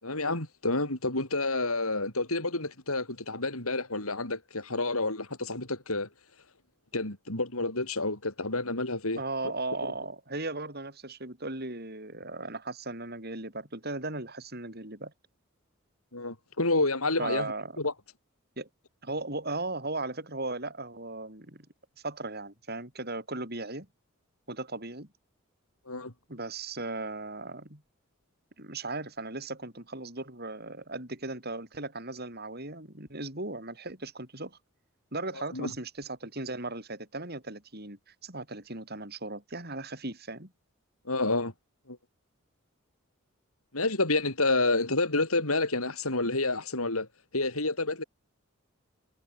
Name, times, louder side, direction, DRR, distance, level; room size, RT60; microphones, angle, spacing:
voice 1, 0.0-6.1 6.9-9.2 16.1-17.9 25.9-26.1 35.5-35.7 41.1-41.5 41.9-42.0 43.7-47.1 47.3-48.0, left 2 dB, 90° left, 7.5 m, -29 dB
voice 2, 9.2-15.1 17.2-17.8 18.6-18.7 19.0-21.7 22.0-23.9 24.5-25.1 26.3-27.8 28.6-34.6 35.1-40.5, right 2 dB, 45° right, 7.4 m, -37 dB
head